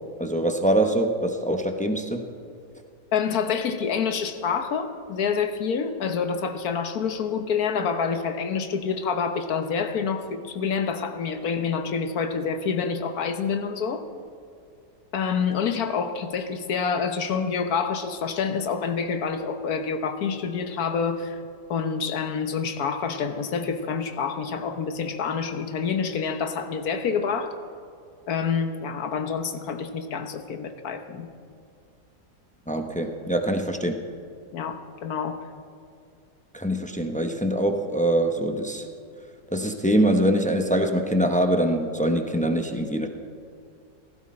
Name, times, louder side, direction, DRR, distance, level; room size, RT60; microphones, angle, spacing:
voice 1, 0.2-2.2 32.7-34.0 36.5-38.9 39.5-43.1, right 1 dB, 10° left, 4 dB, 0.5 m, -24 dB
voice 2, 3.1-14.0 15.1-21.4 21.7-27.5 28.3-31.3 34.5-35.4, left 6 dB, 65° left, 8 dB, 1.4 m, -27 dB
16.0 x 15.0 x 4.3 m, 2.4 s
omnidirectional pair, 1.8 m